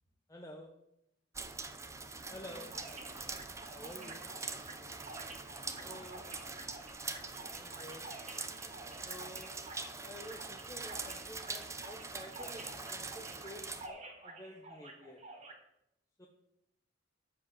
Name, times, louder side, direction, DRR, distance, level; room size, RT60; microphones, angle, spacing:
voice 1, 0.3-0.7 2.3-2.7 3.7-4.2 5.8-6.2 7.5-8.1 9.0-9.6 10.0-15.2 16.2-16.3, left 1 dB, 15° left, 0 dB, 0.9 m, -50 dB
sound 1, 1.3-13.9, right 3 dB, 15° right, 0.7 m, -44 dB
voice 2, 2.1-4.3 5.6-6.7, equal, 35° left, 1 dB, 2.5 m, -60 dB
sound 2, 2.4-15.5, right 2 dB, 35° right, 1.9 m, -51 dB
13.0 x 5.0 x 7.5 m, 0.82 s
head